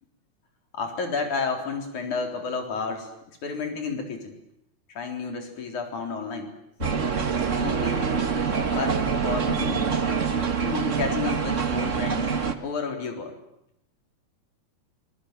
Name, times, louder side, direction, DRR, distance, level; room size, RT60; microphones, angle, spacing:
voice 1, 0.7-3.1 3.4-4.4 5.0-6.5 7.6-8.3 8.7-10.0 10.6-12.3 12.6-13.4, left 4 dB, 75° left, 4 dB, 5.4 m, -31 dB
sound 1, 6.8-12.5, right 6 dB, 35° right, 1.4 m, -25 dB
25.5 x 23.0 x 9.4 m, 0.79 s
omnidirectional pair, 3.5 m